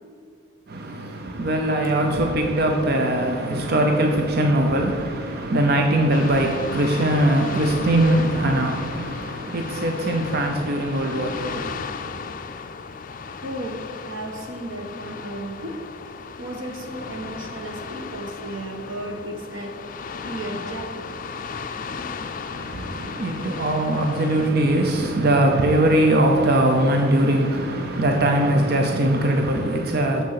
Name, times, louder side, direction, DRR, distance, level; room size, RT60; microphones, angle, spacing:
voice 1, 0.7-11.7 22.5-30.2, right 1 dB, 55° right, 0.7 m, -21 dB
sound 1, 6.1-24.5, left 5 dB, 45° left, 0.4 m, -35 dB
voice 2, 13.4-15.8 16.4-19.8 20.2-21.1, right 1 dB, 90° right, 1.3 m, -34 dB
7.2 x 6.4 x 5.8 m
head